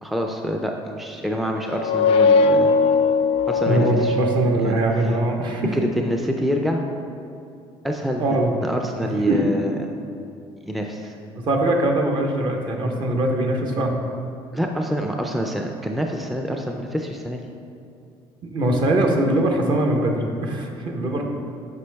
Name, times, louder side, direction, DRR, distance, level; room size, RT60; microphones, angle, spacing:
voice 1, 0.0-2.7 3.5-4.2 4.6-4.8 5.7-6.8 7.8-9.9 10.7-11.1 14.5-17.4, equal, ahead, 2 dB, 0.4 m, -26 dB
sound 1, 1.6-5.2, left 3 dB, 65° left, 0.4 m, -20 dB
voice 2, 3.6-5.7 8.2-8.5 9.3-9.4 11.4-13.9 18.4-21.2, right 1 dB, 45° right, 2 dB, 0.9 m, -22 dB
8.1 x 5.3 x 3.4 m, 2.5 s
cardioid pair, 120°, 11 cm